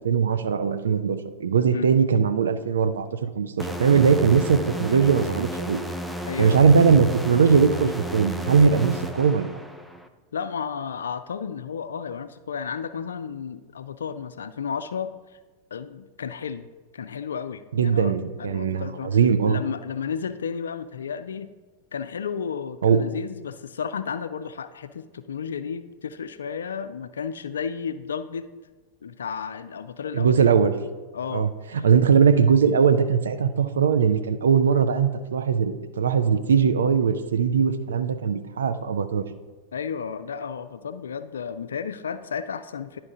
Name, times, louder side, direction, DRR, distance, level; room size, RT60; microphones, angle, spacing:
voice 1, 0.0-5.8 6.4-9.5 17.7-19.6 22.8-23.0 30.1-30.8 31.3-39.2, right 6 dB, 65° right, 10 dB, 0.5 m, -20 dB
sound 1, 3.6-10.1, equal, ahead, 0.5 m, -33 dB
voice 2, 6.3-6.7 10.3-15.1 15.7-16.7 16.9-19.2 19.5-21.5 21.9-28.5 29.0-30.5 31.1-31.5 31.7-31.9 39.7-43.0, left 6 dB, 65° left, 12 dB, 0.3 m, -33 dB
10.5 x 4.4 x 3.7 m, 1.3 s
figure-of-eight pair, 90°, 0 cm